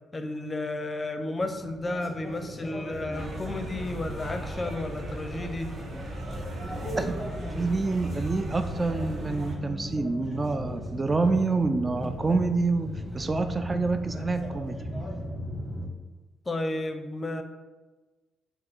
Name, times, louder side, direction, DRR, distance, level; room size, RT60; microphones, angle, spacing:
voice 1, 0.1-5.7 16.5-17.4, left 2 dB, 30° left, 7 dB, 0.5 m, -32 dB
sound 1, 1.4-15.9, equal, 10° right, 1.2 m, -37 dB
sound 2, 2.9-10.0, left 1 dB, 70° right, 1.1 m, -45 dB
sound 3, 3.1-9.5, right 1 dB, 50° right, 0.7 m, -38 dB
voice 2, 7.0-14.8, right 3 dB, 30° right, 8 dB, 0.3 m, -27 dB
4.1 x 2.4 x 4.3 m, 1.2 s
hypercardioid pair, 50°, 0 cm